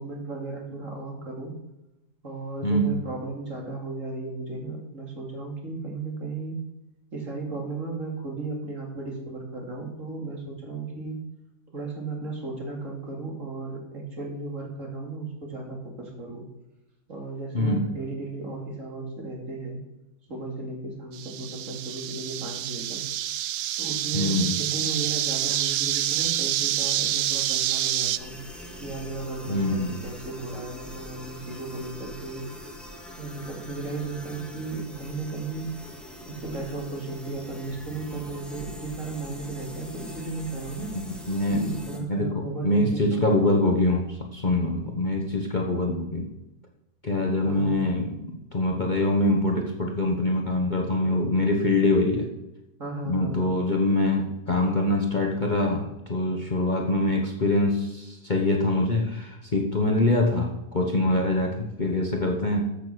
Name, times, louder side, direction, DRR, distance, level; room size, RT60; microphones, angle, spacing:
voice 1, 0.0-1.5 2.2-6.6 7.1-11.2 11.7-16.5 17.1-19.8 20.3-23.0 23.8-28.4 28.8-32.4 33.2-35.7 36.3-41.0 41.5-43.8 47.4-47.8 52.8-53.5, right 3 dB, 50° right, 0 dB, 3.3 m, -35 dB
voice 2, 2.6-3.0 17.5-17.9 24.1-24.6 29.5-30.0 40.9-41.8 42.1-46.3 47.0-52.3 53.0-62.6, left 1 dB, 30° left, 2 dB, 1.2 m, -24 dB
sound 1, 21.1-28.2, right 12 dB, 70° right, 0.9 m, -27 dB
sound 2, 28.1-42.0, left 1 dB, ahead, 1.7 m, -43 dB
14.0 x 6.9 x 6.2 m, 0.98 s
omnidirectional pair, 1.8 m